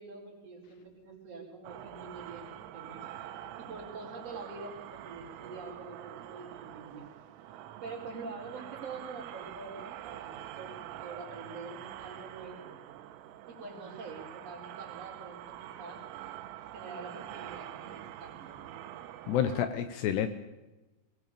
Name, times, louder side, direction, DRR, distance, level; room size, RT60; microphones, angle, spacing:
voice 1, 0.0-3.1 3.6-7.1 7.8-12.7 13.5-16.0 16.7-18.7, right 4 dB, 30° right, -1 dB, 5.2 m, -45 dB
sound 1, 1.6-19.6, right 12 dB, 85° right, 3.5 m, -46 dB
voice 2, 19.3-20.3, left 9 dB, 75° left, 11 dB, 2.6 m, -29 dB
22.0 x 19.5 x 7.0 m, 1.1 s
omnidirectional pair, 5.7 m